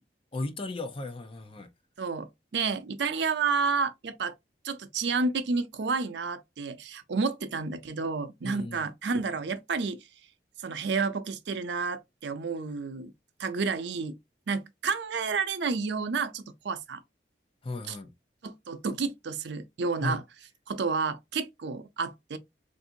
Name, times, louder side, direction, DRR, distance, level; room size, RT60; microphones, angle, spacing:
voice 1, 0.3-1.7 8.4-8.9 17.6-18.1 20.0-20.2, left 2 dB, 30° left, 0.6 m, -35 dB
voice 2, 2.0-4.3 4.6-10.0 10.6-13.1 13.4-14.2 14.5-17.0 17.9-18.0 18.4-20.2 20.7-22.4, right 4 dB, 75° right, 0.5 m, -30 dB
3.5 x 2.6 x 2.6 m
head